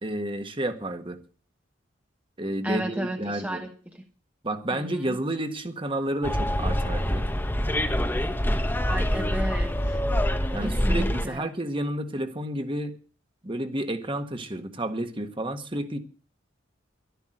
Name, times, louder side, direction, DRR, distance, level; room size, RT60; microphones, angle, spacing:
voice 1, 0.0-1.2 2.4-3.6 4.4-7.2 10.5-12.9 13.4-16.0, right 1 dB, 25° right, 7 dB, 1.6 m, -30 dB
voice 2, 2.6-4.0 4.7-5.2 8.5-10.0 10.6-11.5, right 1 dB, 10° right, 3 dB, 1.2 m, -34 dB
Bus, 6.2-11.3, equal, 10° left, 1.1 m, -25 dB
12.0 x 11.5 x 7.8 m, 0.40 s
head